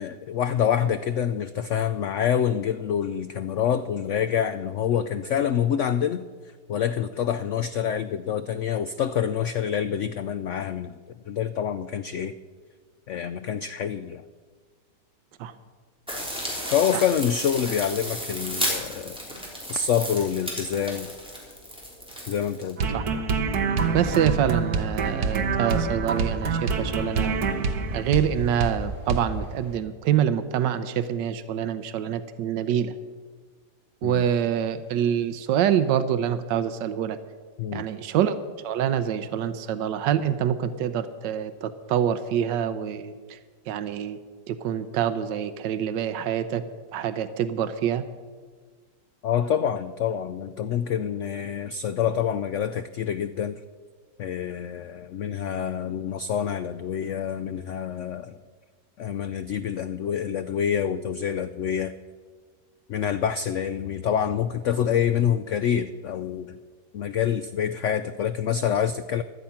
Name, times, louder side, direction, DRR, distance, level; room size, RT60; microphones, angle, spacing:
voice 1, 0.0-6.2 6.7-10.9 11.3-12.3 13.1-14.2 16.7-19.2 19.7-21.1 22.3-22.8 34.0-34.2 37.6-37.8 49.2-53.6 54.2-58.4 59.0-61.9 62.9-66.5 66.9-69.2, left 8 dB, 90° left, 12 dB, 0.6 m, -26 dB
sound 1, 16.1-22.7, equal, 5° right, 3.6 m, -33 dB
sound 2, 22.8-28.3 28.6-28.8 29.1-29.2, right 5 dB, 65° right, 1.5 m, -26 dB
sound 3, 23.8-29.8, left 1 dB, 45° left, 4.7 m, -48 dB
voice 2, 23.9-27.4 27.9-32.9 34.0-37.2 37.7-38.3 38.6-43.4 43.7-44.2 44.5-46.6 46.9-48.0, right 9 dB, 90° right, 12 dB, 1.4 m, -26 dB
16.0 x 12.0 x 5.7 m, 1.5 s
omnidirectional pair, 1.9 m